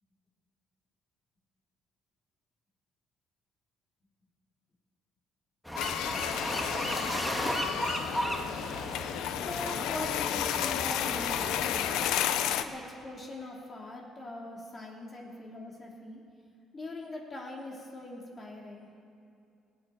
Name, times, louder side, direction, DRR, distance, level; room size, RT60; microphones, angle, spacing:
sound 1, 5.7-12.1, equal, 5° left, 1.7 m, -35 dB
sound 2, 5.8-12.6, left 10 dB, 85° left, 0.7 m, -32 dB
voice 1, 9.0-12.0 12.6-16.2 16.7-18.9, left 1 dB, 35° left, -1 dB, 2.9 m, -42 dB
18.0 x 7.9 x 9.2 m, 2.5 s
cardioid pair, 95°, 0 cm